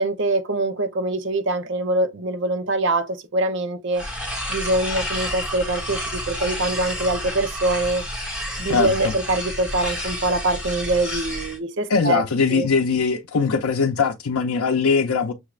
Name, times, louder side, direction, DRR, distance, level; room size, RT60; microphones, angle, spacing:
voice 1, 0.0-4.1 4.5-8.0 8.6-12.2 12.5-12.7, right 2 dB, 55° right, 0.7 m, -24 dB
sound 1, 3.9-11.6, equal, 5° right, 1.2 m, -30 dB
voice 2, 8.6-9.1 11.9-15.3, left 5 dB, 85° left, 0.5 m, -21 dB
6.3 x 2.4 x 3.1 m
head